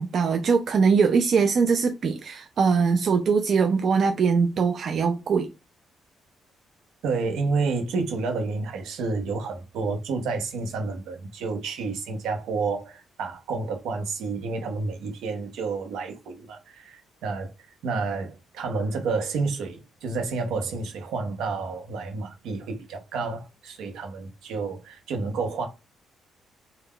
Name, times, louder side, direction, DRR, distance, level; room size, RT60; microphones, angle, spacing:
voice 1, 0.0-5.5, right 5 dB, 55° right, 0.3 m, -22 dB
voice 2, 7.0-17.5 17.8-25.7, right 4 dB, 85° right, 0.7 m, -30 dB
3.4 x 2.1 x 2.2 m
cardioid pair, 90°, 0 cm